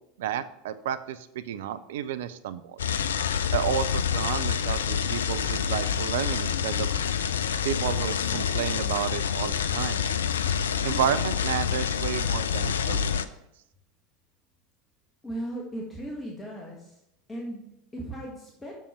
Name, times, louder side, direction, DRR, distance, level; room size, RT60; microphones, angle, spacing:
voice 1, 0.2-2.8 3.5-6.9 7.6-10.0 10.8-13.3, right 10 dB, 65° right, 13 dB, 0.5 m, -31 dB
sound 1, 2.8-13.2, left 7 dB, 75° left, 0.4 m, -27 dB
voice 2, 15.2-17.0 17.3-18.7, right 1 dB, 15° left, -2 dB, 1.8 m, -37 dB
7.5 x 7.0 x 4.5 m, 0.82 s
figure-of-eight pair, 80°, 0 cm